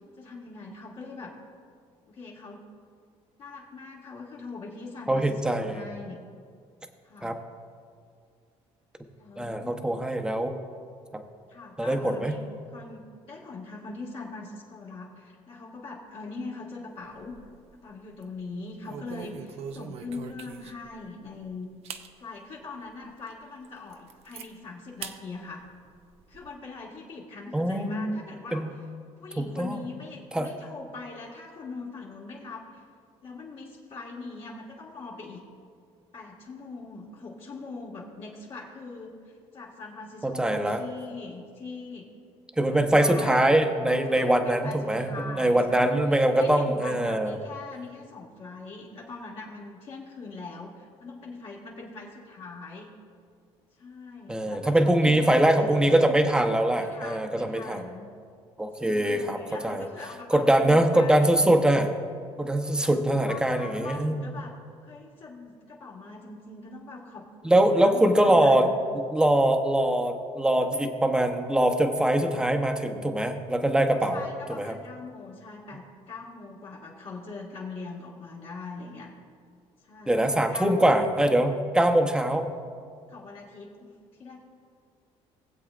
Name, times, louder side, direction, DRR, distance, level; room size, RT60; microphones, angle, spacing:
voice 1, 0.2-1.3 2.1-2.6 3.4-6.2 7.0-7.4 9.1-9.8 11.5-12.4 12.7-17.4 17.7-21.7 22.2-25.6 26.3-28.7 29.2-32.8 33.2-35.4 36.1-42.1 42.7-43.4 44.1-52.9 53.8-56.0 56.8-58.1 58.8-61.3 62.6-64.5 64.8-67.6 67.8-68.8 74.1-79.1 79.8-81.0 83.1-83.9 84.2-84.4, left 3 dB, 55° left, -5 dB, 1.8 m, -42 dB
voice 2, 5.1-5.9 7.2-7.4 9.4-10.5 11.1-11.2 11.8-12.3 27.5-28.2 28.5-28.7 29.4-29.9 30.3-30.5 40.2-40.8 42.6-47.4 54.3-57.8 58.6-59.9 60.3-61.9 62.4-64.3 67.4-68.7 68.9-74.2 74.6-74.7 80.1-82.5, right 1 dB, 5° right, 6 dB, 0.8 m, -23 dB
sound 1, 17.0-17.7 18.1-18.3 18.8-20.9 21.4-21.5 21.8-22.1 22.6-22.7 23.2-23.3 23.6-24.5 25.0-25.2 25.6-26.5, right 7 dB, 65° right, 0.7 m, -41 dB
19.5 x 7.9 x 2.5 m, 2.2 s
cardioid pair, 110°, 12 cm